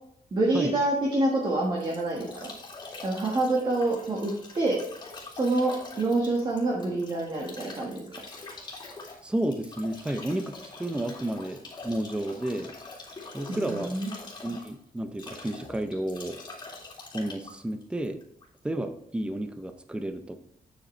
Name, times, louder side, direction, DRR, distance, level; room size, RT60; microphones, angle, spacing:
voice 1, 0.3-2.5 3.0-4.8 5.3-8.0 13.5-14.1, right 2 dB, 30° right, -2 dB, 1.4 m, -27 dB
Bathtub (filling or washing) / Drip / Trickle dribble, 1.3-18.6, left 3 dB, 30° left, 2.4 m, -44 dB
voice 2, 9.2-12.7 13.3-14.0 14.4-16.4 17.1-18.2 18.6-20.4, right 1 dB, 5° right, 8 dB, 0.6 m, -31 dB
8.7 x 8.0 x 3.2 m, 0.69 s
wide cardioid pair, 165°, 15 cm